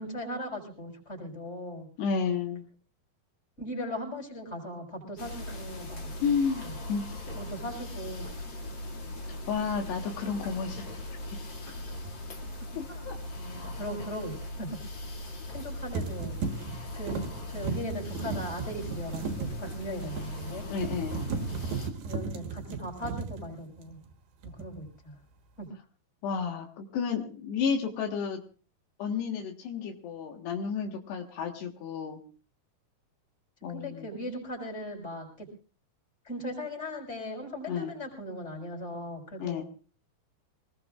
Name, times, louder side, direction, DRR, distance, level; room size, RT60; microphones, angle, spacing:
voice 1, 0.0-1.9 3.6-6.1 6.6-6.7 7.3-8.4 12.9-13.0 13.4-14.7 15.5-16.4 16.9-17.2 17.5-20.6 22.1-24.0 24.6-25.1 25.6-25.7 33.7-35.5 36.2-39.6, equal, 15° left, 1 dB, 6.2 m, -38 dB
voice 2, 2.0-2.6 6.2-7.2 9.3-10.9 12.8-13.2 20.7-21.2 26.2-28.4 29.0-32.2 33.6-34.1 37.7-37.9 39.4-39.6, left 6 dB, 75° left, 2 dB, 3.6 m, -31 dB
sound 1, 5.2-21.9, left 1 dB, 35° left, 2.5 m, -39 dB
sound 2, 12.0-12.1 15.3-15.6 15.9-24.1 24.4-24.9, right 5 dB, 75° right, 3.5 m, -36 dB
25.5 x 20.5 x 2.5 m, 0.37 s
omnidirectional pair, 4.8 m